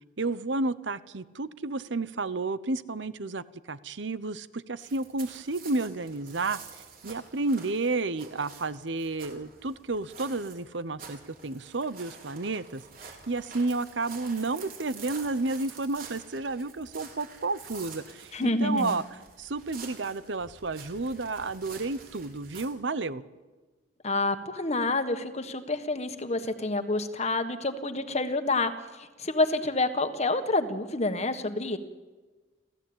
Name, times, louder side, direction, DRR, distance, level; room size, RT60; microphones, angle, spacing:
voice 1, 0.2-19.0 19.4-23.2, right 3 dB, 70° right, 15 dB, 0.9 m, -31 dB
sound 1, 4.8-22.6, right 5 dB, 50° right, 4.7 m, -48 dB
voice 2, 18.3-18.9 24.0-28.7 29.0-31.8, left 2 dB, 35° left, 9 dB, 1.6 m, -28 dB
29.5 x 14.5 x 8.9 m, 1.3 s
head